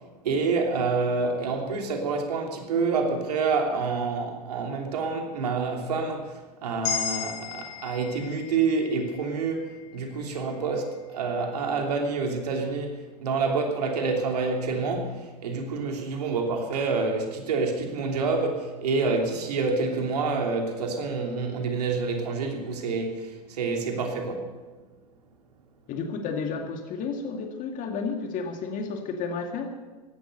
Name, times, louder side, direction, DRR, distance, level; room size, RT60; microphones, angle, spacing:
voice 1, 0.2-24.5, right 4 dB, 70° right, 2 dB, 3.2 m, -28 dB
sound 1, 6.8-11.1, left 8 dB, 55° left, 6.7 m, -36 dB
voice 2, 25.9-29.7, left 5 dB, 40° left, 4 dB, 2.3 m, -32 dB
16.5 x 12.0 x 6.8 m, 1.3 s
hypercardioid pair, 95°, 21 cm